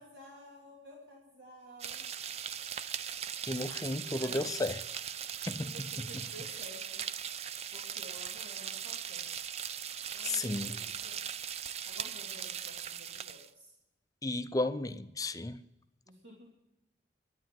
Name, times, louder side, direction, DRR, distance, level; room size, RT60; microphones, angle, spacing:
voice 1, 0.0-2.1 4.1-4.5 5.6-7.0 7.7-9.3 10.1-11.2 11.9-13.7 16.1-16.6, equal, 70° right, 2.9 m, -52 dB
sound 1, 1.8-13.5, right 9 dB, 35° right, 0.4 m, -39 dB
voice 2, 3.5-4.8 5.5-5.7 10.2-10.8 14.2-15.6, left 2 dB, 20° left, 0.5 m, -33 dB
12.0 x 9.8 x 7.6 m
head